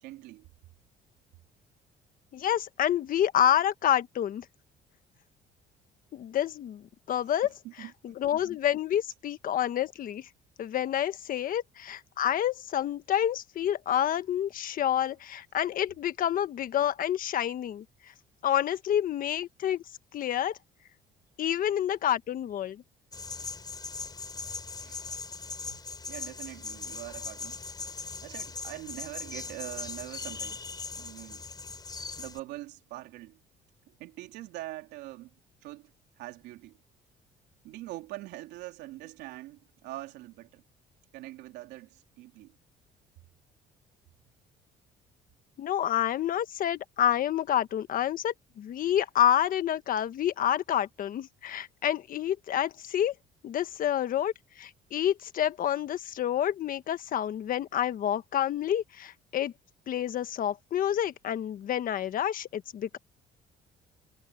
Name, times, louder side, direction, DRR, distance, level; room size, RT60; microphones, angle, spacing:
voice 1, 0.0-0.5 7.4-7.9 24.8-25.0 26.1-27.6 28.2-30.6 31.0-31.4 32.2-33.4 33.9-35.3 35.6-35.9 36.2-36.8 37.6-40.6 41.1-42.6, right 17 dB, 90° right, 3.5 m, -43 dB
voice 2, 2.3-4.4 6.1-7.5 8.0-10.3 10.6-17.8 18.4-19.8 20.1-20.6 21.4-22.8 45.6-53.1 53.4-59.5 59.9-63.0, left 10 dB, 55° left, 1.4 m, -28 dB
sound 1, 23.1-32.4, left 4 dB, 25° left, 5.0 m, -39 dB
cardioid pair, 110°, 17 cm